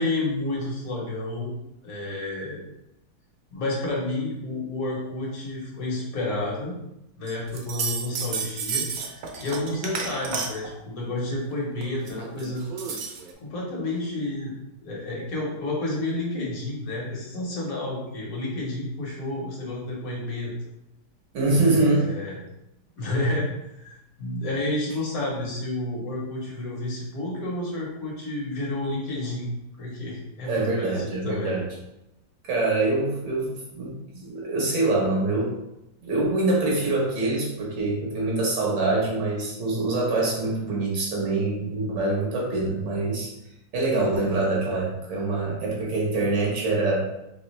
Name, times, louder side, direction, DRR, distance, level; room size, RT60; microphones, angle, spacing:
voice 1, 0.0-1.5 1.8-2.6 3.5-6.8 7.2-12.6 13.4-14.5 14.8-20.5 22.0-22.4 23.0-29.5 29.8-31.5, left 2 dB, 60° left, -4 dB, 1.5 m, -30 dB
sound 1, 7.3-10.7 11.8-13.3, right 5 dB, 65° right, 1.0 m, -32 dB
voice 2, 21.3-22.1 30.5-31.7 32.4-35.5 36.0-43.3 43.7-47.1, right 2 dB, 85° right, -3 dB, 2.0 m, -25 dB
4.3 x 3.3 x 3.2 m, 0.89 s
omnidirectional pair, 1.9 m